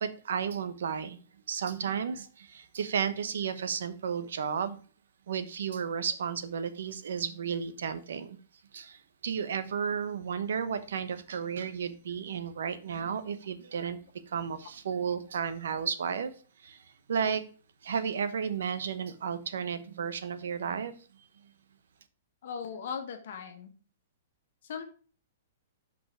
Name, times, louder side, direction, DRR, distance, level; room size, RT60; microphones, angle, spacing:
voice 1, 0.0-1.2 1.5-4.8 5.3-8.4 8.7-14.0 14.3-16.3 16.6-17.4 17.8-20.9 21.2-21.3, right 7 dB, 75° right, 1.0 m, -33 dB
voice 2, 22.4-23.7 24.6-24.9, left 6 dB, 55° left, 1.4 m, -38 dB
5.6 x 5.3 x 5.0 m
hypercardioid pair, 170°, 0 cm